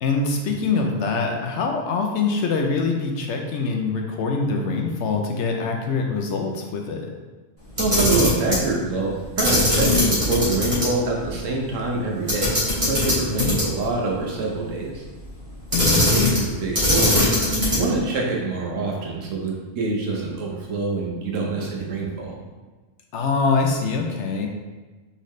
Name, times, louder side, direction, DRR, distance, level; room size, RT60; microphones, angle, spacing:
voice 1, 0.0-7.1 13.4-13.5 15.7-16.3 23.1-24.5, left 4 dB, 70° left, 2 dB, 0.8 m, -24 dB
Camera, 7.7-8.6 9.4-10.9 11.2-11.3 12.3-13.9 15.7-16.5 16.7-17.9, left 1 dB, 25° right, 1.5 m, -20 dB
voice 2, 7.8-15.0 16.1-17.3 17.5-22.3, right 3 dB, 75° right, -2 dB, 1.2 m, -25 dB
4.1 x 3.9 x 3.1 m, 1.3 s
omnidirectional pair, 1.3 m